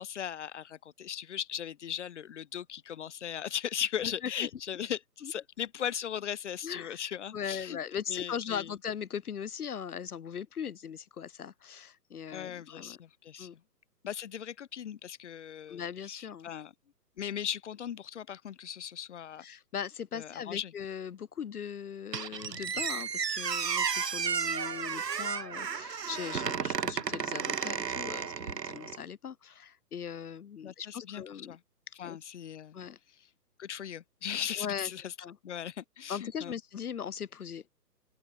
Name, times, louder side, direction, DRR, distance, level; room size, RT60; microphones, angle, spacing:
voice 1, 0.0-7.8 8.1-8.7 12.3-13.5 14.0-16.7 17.2-19.4 20.1-20.7 30.6-31.6 32.0-32.8 33.6-35.1 35.4-36.5, left 9 dB, 50° left, 0.5 m, -38 dB
voice 2, 4.0-4.5 5.2-5.3 6.6-13.0 13.4-13.6 15.7-16.5 19.4-31.6 32.0-32.2 32.7-33.0 34.6-34.9 35.2-35.4 36.1-37.6, left 8 dB, 65° left, 1.5 m, -39 dB
Squeak, 22.1-29.0, right 7 dB, 80° right, 1.5 m, -33 dB
open air
hypercardioid pair, 145°, 48 cm